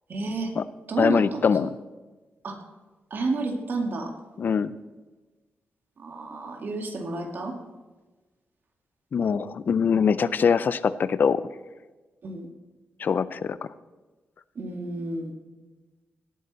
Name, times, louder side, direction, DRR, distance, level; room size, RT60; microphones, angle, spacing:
voice 1, 0.1-0.5 0.9-1.5 2.4-2.6 3.1-4.1 6.0-7.6 12.2-12.5 14.6-15.3, right 3 dB, 55° right, 3 dB, 2.1 m, -30 dB
voice 2, 1.0-1.8 4.4-4.7 9.1-11.4 13.0-13.6, left 6 dB, 55° left, 16 dB, 0.5 m, -23 dB
17.5 x 8.7 x 4.1 m, 1.2 s
wide cardioid pair, 125°, 4 cm